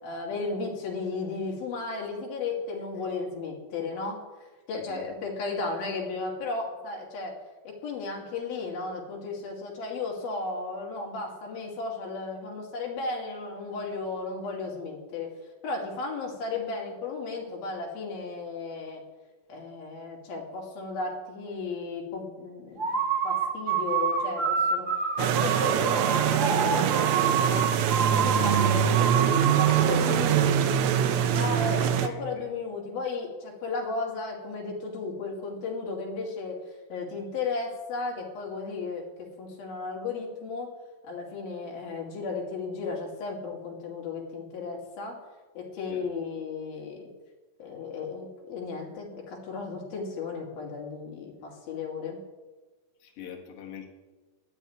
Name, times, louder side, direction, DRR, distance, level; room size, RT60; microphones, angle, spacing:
voice 1, 0.0-4.2 4.7-7.3 7.6-15.3 15.6-19.0 19.5-23.0 23.2-24.9 25.2-27.7 28.0-30.8 31.3-36.6 36.9-40.7 41.0-45.2 45.6-47.1 47.6-52.2, left 4 dB, 90° left, -1 dB, 4.3 m, -34 dB
sound 1, 22.8-30.0, right 6 dB, 40° right, 1.1 m, -27 dB
sound 2, 25.2-32.1, right 9 dB, 80° right, 1.6 m, -24 dB
voice 2, 29.9-30.3 31.8-32.5 45.9-46.1 53.0-53.9, left 8 dB, 50° left, 1 dB, 2.2 m, -44 dB
12.0 x 7.3 x 9.2 m, 1.3 s
omnidirectional pair, 4.1 m